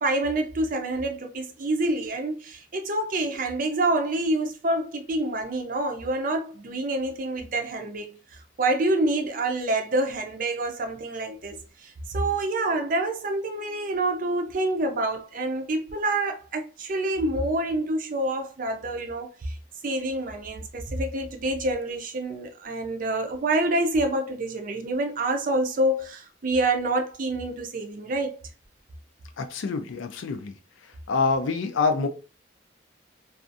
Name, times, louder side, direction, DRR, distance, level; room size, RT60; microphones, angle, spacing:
voice 1, 0.0-8.1 8.6-19.6 19.8-28.3, right 2 dB, 45° right, 0.4 m, -27 dB
voice 2, 29.4-30.5 31.1-32.1, left 4 dB, 85° left, 0.4 m, -26 dB
2.5 x 2.3 x 2.5 m
head